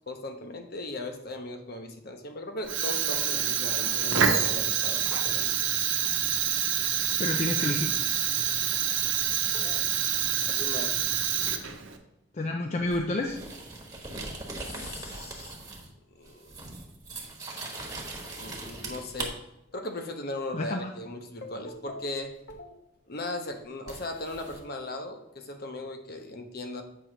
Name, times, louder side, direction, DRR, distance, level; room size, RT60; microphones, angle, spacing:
voice 1, 0.1-5.5 9.5-9.9 10.5-11.1 14.6-15.5 16.2-16.5 17.8-18.1 18.4-19.4 19.7-22.8 23.1-26.8, left 2 dB, 50° left, 5 dB, 0.8 m, -38 dB
Fire, 2.6-12.0, right 9 dB, 90° right, 0.9 m, -27 dB
voice 2, 7.2-7.9 12.3-13.4 20.5-20.9, left 2 dB, 35° left, 3 dB, 0.5 m, -29 dB
sound 1, 12.9-16.0 16.2-19.3 22.5-22.6 23.9-24.6, right 2 dB, 20° right, 1.2 m, -40 dB
8.1 x 3.1 x 6.0 m, 0.87 s
head